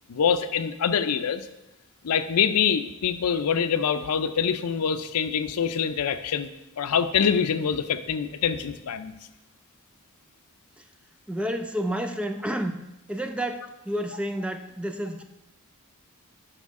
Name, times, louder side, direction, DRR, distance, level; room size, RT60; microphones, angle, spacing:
voice 1, 0.1-1.4 2.0-6.5 6.8-9.1, left 7 dB, 90° left, 11 dB, 0.5 m, -25 dB
voice 2, 11.3-12.8 13.1-15.2, equal, 5° right, 7 dB, 0.3 m, -30 dB
8.3 x 5.4 x 3.6 m, 0.93 s
head